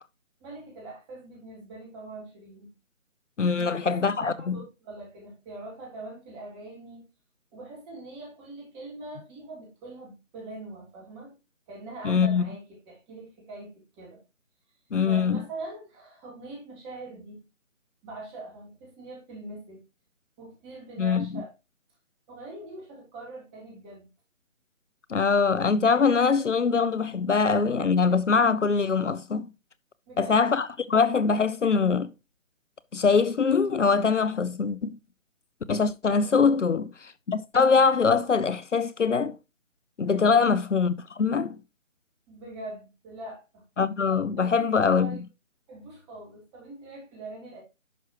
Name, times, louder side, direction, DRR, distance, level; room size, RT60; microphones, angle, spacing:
voice 1, 0.4-2.7 3.6-7.1 7.5-11.3 11.7-14.2 15.0-17.4 18.0-19.8 20.4-21.5 22.3-24.1 30.1-30.6 36.0-36.4 40.0-40.4 42.3-43.6 44.4-45.2 45.7-47.6, right 2 dB, 10° right, 3.2 m, -43 dB
voice 2, 3.4-4.6 12.0-12.4 14.9-15.4 21.0-21.4 25.1-29.5 30.2-32.1 32.9-35.0 35.7-39.3 40.0-41.6 43.8-45.2, left 5 dB, 65° left, 0.8 m, -23 dB
11.0 x 6.2 x 3.0 m
figure-of-eight pair, 155°, 39 cm